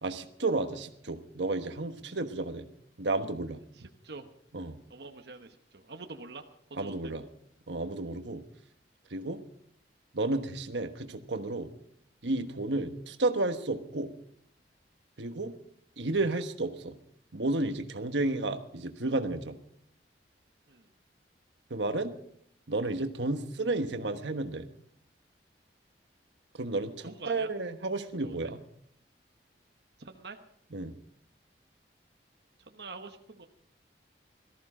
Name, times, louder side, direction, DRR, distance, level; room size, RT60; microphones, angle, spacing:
voice 1, 0.0-2.7 3.0-3.6 4.5-4.8 6.8-7.2 7.7-8.4 9.1-9.4 10.1-11.7 12.2-14.1 15.2-15.5 16.0-16.9 17.3-19.6 21.7-22.2 22.7-24.7 26.6-28.6 30.7-30.9, right 2 dB, 85° right, 8 dB, 1.3 m, -32 dB
voice 2, 3.7-4.3 4.9-6.4 6.7-7.1 20.7-20.9 27.0-27.5 28.2-28.5 30.0-30.4 32.6-33.5, right 3 dB, 70° right, 5 dB, 1.1 m, -45 dB
18.5 x 14.0 x 4.9 m, 0.67 s
head